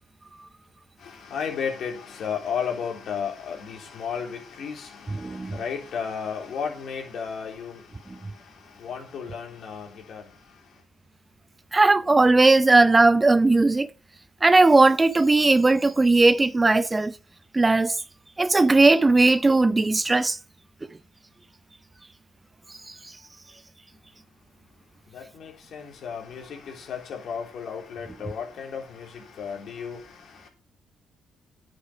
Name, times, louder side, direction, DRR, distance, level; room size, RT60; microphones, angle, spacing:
voice 1, 1.0-10.3 25.1-30.5, left 6 dB, 65° left, 3.4 m, -34 dB
voice 2, 5.2-5.6 11.7-13.9 14.4-17.1 17.5-18.0 18.4-20.4, right 3 dB, 25° right, 0.6 m, -18 dB
9.7 x 6.5 x 5.8 m
hypercardioid pair, 50°, 0 cm